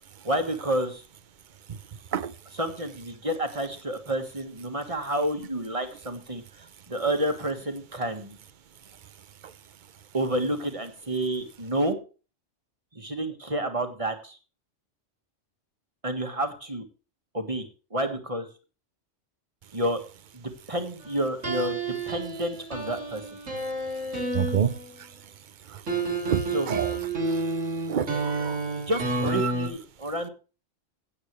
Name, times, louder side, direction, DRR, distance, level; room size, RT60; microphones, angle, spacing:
voice 1, 0.2-1.0 2.5-8.4 10.1-12.0 12.9-14.4 16.0-16.9 17.3-17.6 17.9-18.5 19.7-20.0 20.3-21.8 22.1-23.2 26.5-26.7 28.9-30.3, right 1 dB, 25° right, 6 dB, 1.8 m, -29 dB
sound 1, 21.4-24.9 25.9-29.7, right 2 dB, 80° right, 3.4 m, -30 dB
voice 2, 24.3-24.7 26.3-26.9 27.9-28.6 29.4-29.5, right 8 dB, 45° right, 15 dB, 0.9 m, -27 dB
16.5 x 8.8 x 3.3 m, 0.35 s
omnidirectional pair, 1.3 m